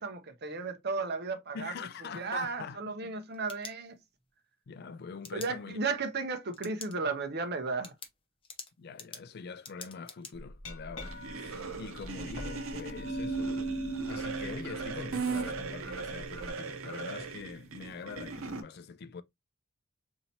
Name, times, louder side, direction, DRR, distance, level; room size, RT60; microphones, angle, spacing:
voice 1, 0.0-1.7 2.1-4.0 5.3-7.9, right 4 dB, 50° right, 0.7 m, -34 dB
voice 2, 1.5-3.1 4.7-5.8 8.8-13.6 14.0-19.2, left 5 dB, 50° left, 0.4 m, -44 dB
sound 1, 3.1-4.3 5.2-5.5 6.5-6.9 7.3-7.4 7.8-10.3, left 5 dB, 25° left, 0.7 m, -46 dB
Glass, 10.3-16.5, right 2 dB, 65° left, 1.5 m, -39 dB
sound 2, 11.0-18.6, right 4 dB, 90° right, 0.7 m, -39 dB
4.2 x 2.8 x 2.7 m
head